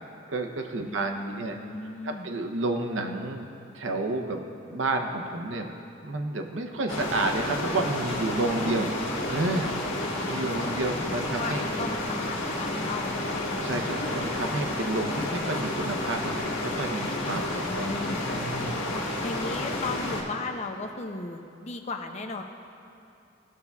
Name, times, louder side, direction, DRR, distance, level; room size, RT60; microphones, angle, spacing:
voice 1, 0.0-1.5 2.0-3.5 3.7-5.7 6.0-8.9 9.3-11.6 13.6-17.9 18.3-19.0, right 2 dB, 85° right, 4 dB, 0.8 m, -31 dB
voice 2, 0.8-2.3 8.6-8.9 10.7-13.4 17.3-18.2 19.2-22.4, left 3 dB, 35° left, 5 dB, 0.6 m, -36 dB
sound 1, 6.9-20.2, left 1 dB, 85° left, 1.7 m, -30 dB
17.0 x 6.8 x 2.3 m, 2.6 s
head